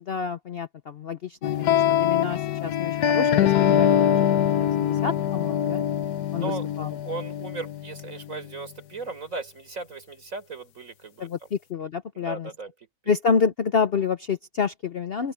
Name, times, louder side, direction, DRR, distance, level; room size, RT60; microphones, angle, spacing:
voice 1, 0.1-5.8 6.3-6.5 6.8-6.9 11.2-12.5 13.1-15.3, left 5 dB, 50° left, 0.8 m, -28 dB
sound 1, 1.4-8.5, left 10 dB, 85° left, 1.3 m, -23 dB
voice 2, 6.3-11.5 12.1-12.9, right 3 dB, 55° right, 4.6 m, -37 dB
open air
omnidirectional pair, 1.6 m